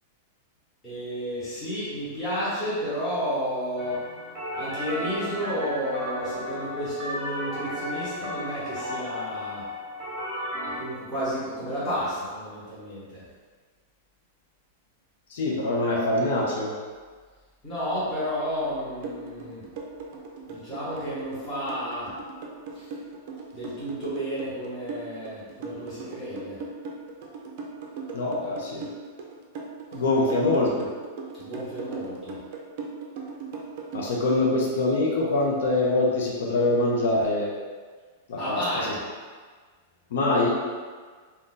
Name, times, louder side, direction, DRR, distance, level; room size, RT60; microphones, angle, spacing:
voice 1, 0.8-4.0 4.5-9.6 10.7-13.2 17.6-19.6 20.5-22.1 22.7-22.9 23.5-26.6 31.4-32.4 38.4-39.0, equal, 10° left, -13 dB, 1.0 m, -31 dB
sound 1, 3.8-10.8, left 1 dB, 20° right, 0.9 m, -34 dB
voice 2, 15.3-16.7 28.1-28.9 29.9-30.9 33.9-37.5 38.3-38.9 40.1-40.5, left 2 dB, 70° left, -3 dB, 0.5 m, -24 dB
sound 2, 19.0-34.4, right 4 dB, 45° right, 0.4 m, -38 dB
2.5 x 2.2 x 3.7 m, 1.5 s
supercardioid pair, 170°, 0 cm